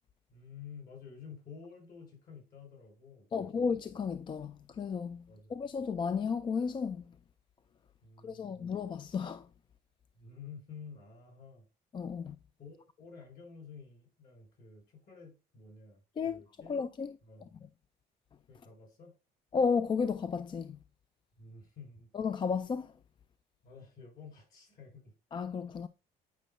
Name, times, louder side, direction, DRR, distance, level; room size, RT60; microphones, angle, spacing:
voice 1, 0.3-3.7 5.3-5.6 8.0-8.7 10.1-11.7 12.6-16.8 17.2-17.5 18.5-19.1 21.4-22.1 23.6-25.1, left 5 dB, 60° left, 4.1 m, -51 dB
voice 2, 3.3-5.2 5.5-7.1 8.2-9.4 11.9-12.3 16.2-16.4 16.7-17.1 19.5-20.8 22.1-22.9 25.3-25.9, left 5 dB, 30° left, 0.3 m, -33 dB
9.2 x 5.2 x 2.2 m
cardioid pair, 110°, 17 cm